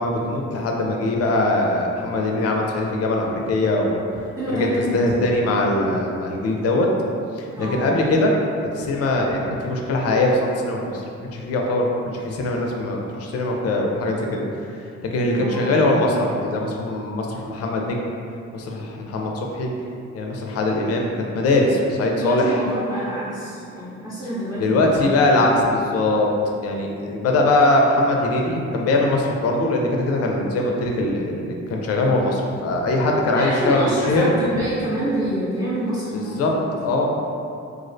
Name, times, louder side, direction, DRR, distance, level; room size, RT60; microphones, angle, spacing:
voice 1, 0.0-4.2 4.5-6.9 7.4-8.3 8.7-11.0 11.3-14.4 15.1-18.0 18.5-19.7 20.1-22.6 24.6-26.3 26.6-34.2 36.1-36.5 36.8-37.1, left 2 dB, 55° left, 0 dB, 0.4 m, -21 dB
voice 2, 4.4-5.0 7.5-7.9 15.3-15.9 22.1-24.9 25.1-25.2 33.3-36.7, equal, 10° right, -12 dB, 0.7 m, -27 dB
2.4 x 2.0 x 2.5 m, 2.6 s
cardioid pair, 90°, 30 cm